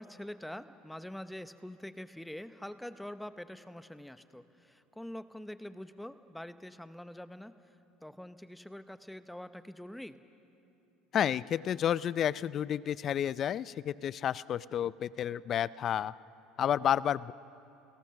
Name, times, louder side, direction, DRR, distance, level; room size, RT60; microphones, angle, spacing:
voice 1, 0.0-7.8 8.0-10.2, left 1 dB, 5° left, 11 dB, 0.8 m, -45 dB
voice 2, 11.1-16.1 16.6-17.3, left 9 dB, 40° left, 19 dB, 0.4 m, -31 dB
28.5 x 17.5 x 6.5 m, 2.8 s
supercardioid pair, 115°, 0 cm